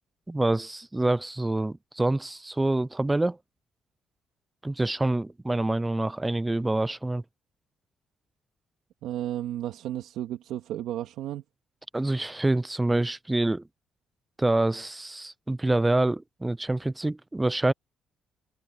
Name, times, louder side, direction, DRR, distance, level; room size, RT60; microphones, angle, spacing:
voice 1, 0.3-3.4 4.6-7.2 11.9-13.6 14.4-17.7, right 2 dB, 15° right, 0.4 m, -26 dB
voice 2, 9.0-11.4, right 12 dB, 85° right, 2.3 m, -33 dB
cardioid pair, 90°, 0 cm